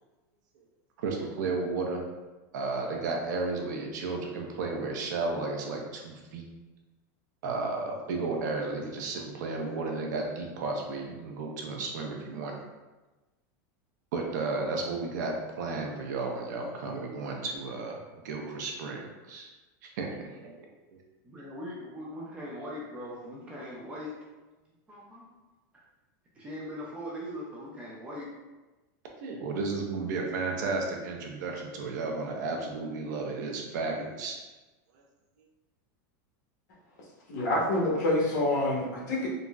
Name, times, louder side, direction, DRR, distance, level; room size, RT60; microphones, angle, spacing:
voice 1, 1.0-2.0 2.5-6.5 7.4-12.5 14.1-19.5 19.8-20.5 29.2-34.4, right 3 dB, 65° right, 1 dB, 0.5 m, -33 dB
voice 2, 21.2-24.1 24.9-25.3 26.4-28.3, equal, 10° right, -5 dB, 0.3 m, -40 dB
voice 3, 37.3-39.3, left 1 dB, 65° left, -4 dB, 1.0 m, -27 dB
3.8 x 2.0 x 2.3 m, 1.2 s
supercardioid pair, 180°, 10 cm